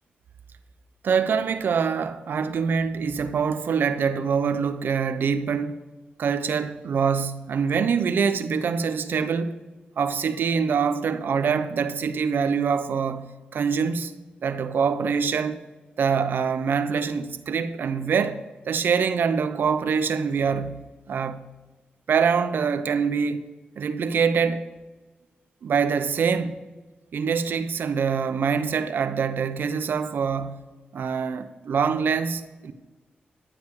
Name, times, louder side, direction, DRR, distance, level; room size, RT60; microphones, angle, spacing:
voice 1, 1.0-5.8 6.2-9.5 10.0-14.1 14.4-15.6 16.0-21.5 22.1-23.4 23.8-24.7 25.6-26.6 27.1-30.6 30.9-32.7, right 6 dB, 75° right, 0.8 m, -24 dB
12.0 x 9.7 x 4.8 m
cardioid pair, 70°, 3 cm